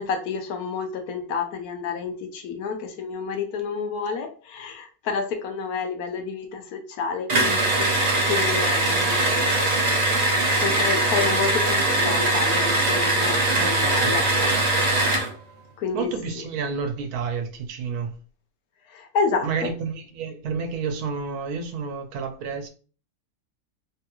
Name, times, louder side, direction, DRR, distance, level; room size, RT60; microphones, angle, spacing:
voice 1, 0.0-7.9 8.3-10.0 10.3-14.5 15.8-16.4 18.9-19.7, left 5 dB, 80° left, 1.2 m, -30 dB
sound 1, 7.3-15.3, right 2 dB, 60° right, 0.4 m, -21 dB
voice 2, 13.5-14.2 15.9-18.1 19.4-22.7, right 5 dB, 90° right, 1.1 m, -30 dB
3.5 x 2.3 x 2.8 m
omnidirectional pair, 1.6 m